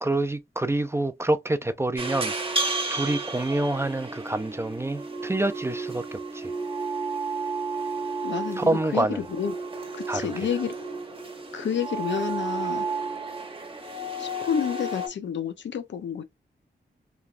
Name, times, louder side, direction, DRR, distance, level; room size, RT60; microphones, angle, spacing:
voice 1, 0.0-2.3 2.9-6.5 8.6-9.2 10.1-10.3, right 2 dB, 15° right, 0.3 m, -27 dB
sound 1, 2.0-15.1, right 3 dB, 30° right, 0.8 m, -32 dB
voice 2, 8.2-9.5 9.9-10.7 11.5-12.9 14.2-16.2, left 7 dB, 85° left, 0.5 m, -30 dB
3.3 x 2.2 x 2.4 m
wide cardioid pair, 90°, 18 cm